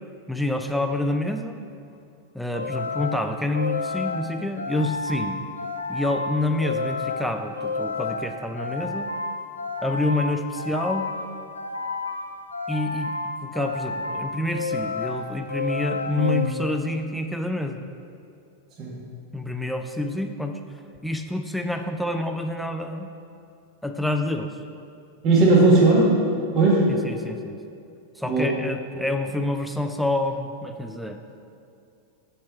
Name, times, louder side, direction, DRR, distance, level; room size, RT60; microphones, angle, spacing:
voice 1, 0.3-1.6 2.3-5.4 5.9-9.1 9.8-11.1 12.7-13.1 13.4-17.8 19.3-20.6 21.0-23.1 23.8-24.5 26.9-27.6 28.2-31.2, left 1 dB, ahead, 5 dB, 0.4 m, -27 dB
sound 1, 2.5-17.1, left 3 dB, 80° left, 0.5 m, -31 dB
voice 2, 25.2-26.2 26.5-26.9 28.3-28.5, right 2 dB, 35° right, -4 dB, 1.6 m, -17 dB
7.3 x 4.6 x 5.4 m, 2.5 s
figure-of-eight pair, 90°, 0 cm